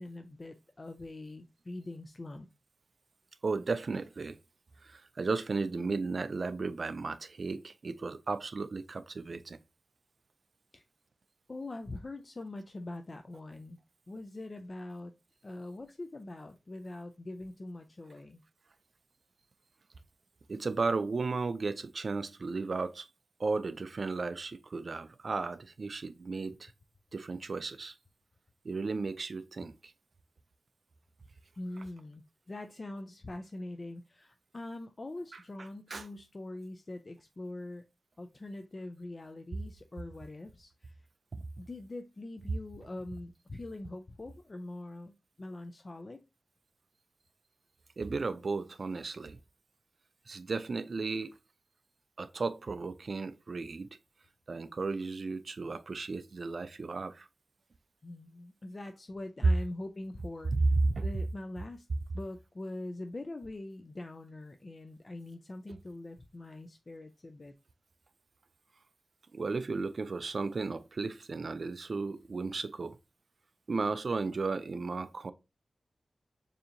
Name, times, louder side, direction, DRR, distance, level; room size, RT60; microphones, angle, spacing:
voice 1, 0.0-2.5 10.7-10.8 11.5-13.8 14.1-15.1 15.4-18.4 31.6-37.8 38.2-40.9 41.6-46.2 58.0-60.5 61.0-61.9 62.1-67.5, left 2 dB, 35° left, 0.3 m, -43 dB
voice 2, 3.4-4.4 4.8-9.6 20.5-23.1 23.4-26.7 27.1-28.0 28.6-29.9 35.3-36.1 41.3-41.4 48.0-49.4 50.3-51.3 52.2-53.9 54.5-57.3 60.5-61.1 69.3-73.0 73.7-75.3, right 3 dB, 55° right, 0.3 m, -34 dB
6.8 x 2.8 x 2.6 m
wide cardioid pair, 130°, 0 cm